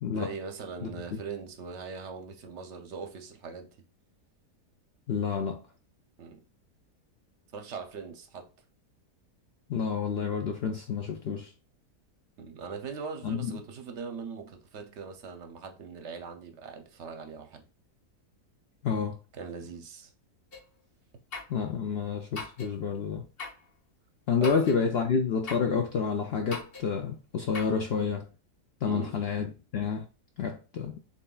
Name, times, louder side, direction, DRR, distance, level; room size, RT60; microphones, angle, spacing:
voice 1, 0.1-3.8 6.2-6.4 7.5-8.5 12.4-17.6 19.3-20.1 24.4-24.5 28.9-29.2, right 5 dB, 55° right, 0.9 m, -41 dB
voice 2, 5.1-5.6 9.7-11.5 13.2-13.6 18.8-19.1 21.5-23.3 24.3-28.2 28.8-29.5 29.7-30.0 30.4-31.0, left 6 dB, 80° left, 0.5 m, -29 dB
sound 1, 20.5-20.7 21.3-21.6 22.3-22.7 23.4-23.6 24.4-24.8 25.5-25.7 26.5-26.9 27.5-27.8, left 4 dB, 40° left, 1.2 m, -40 dB
7.2 x 2.8 x 2.3 m
omnidirectional pair, 1.7 m